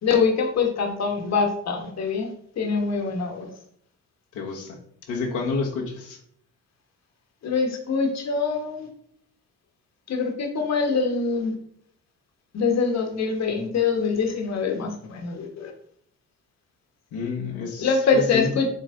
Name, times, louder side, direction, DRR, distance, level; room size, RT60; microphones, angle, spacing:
voice 1, 0.0-3.5 7.4-8.9 10.1-11.5 12.5-15.7 17.8-18.7, left 5 dB, 60° left, 3 dB, 1.4 m, -24 dB
voice 2, 4.3-4.8 5.1-6.2 17.1-17.9 18.1-18.5, left 4 dB, 85° left, -1 dB, 1.3 m, -29 dB
8.1 x 3.2 x 3.7 m, 0.67 s
cardioid pair, 90°, 30 cm